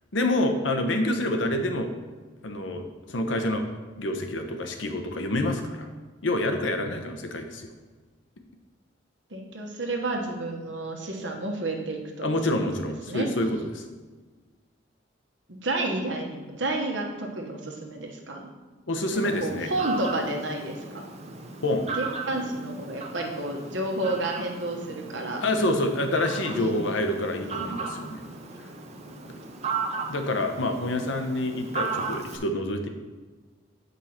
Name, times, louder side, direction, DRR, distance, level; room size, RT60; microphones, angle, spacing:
voice 1, 0.1-1.9 2.4-3.7 4.0-5.9 6.2-7.7 12.2-13.8 18.9-19.7 21.6-21.8 25.4-28.2 30.1-32.9, left 1 dB, 85° left, 5 dB, 0.9 m, -27 dB
voice 2, 9.3-12.5 13.1-13.3 15.5-18.5 19.4-21.0 21.9-25.4 26.5-26.8 27.5-27.8, right 2 dB, 75° right, 1 dB, 1.3 m, -31 dB
Fowl, 19.1-32.4, right 4 dB, 35° right, 0.7 m, -36 dB
7.9 x 5.4 x 4.3 m, 1.4 s
head